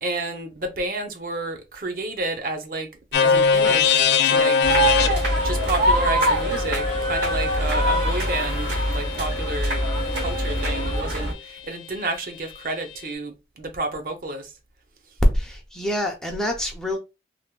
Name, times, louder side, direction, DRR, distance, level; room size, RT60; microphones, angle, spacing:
voice 1, 0.0-2.9 3.2-4.6 5.3-9.8 10.1-14.5, right 2 dB, 50° right, 0.6 m, -30 dB
sound 1, 3.1-11.0, left 5 dB, 70° left, 0.4 m, -23 dB
sound 2, 4.6-11.3, right 1 dB, 90° right, 0.9 m, -23 dB
voice 2, 15.3-17.0, left 1 dB, 5° left, 0.5 m, -27 dB
3.3 x 2.1 x 2.2 m
head